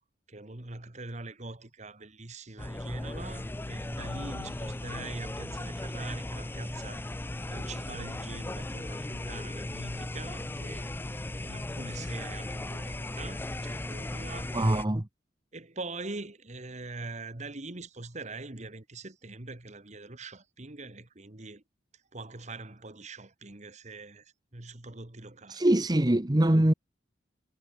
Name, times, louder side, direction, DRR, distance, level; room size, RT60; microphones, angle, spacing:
voice 1, 0.3-14.8 15.5-21.6 22.1-25.7, right 2 dB, 40° right, 1.8 m, -43 dB
sound 1, 2.6-14.8, left 1 dB, 10° left, 0.4 m, -37 dB
voice 2, 14.5-15.0 25.5-26.7, right 1 dB, 20° right, 1.0 m, -23 dB
head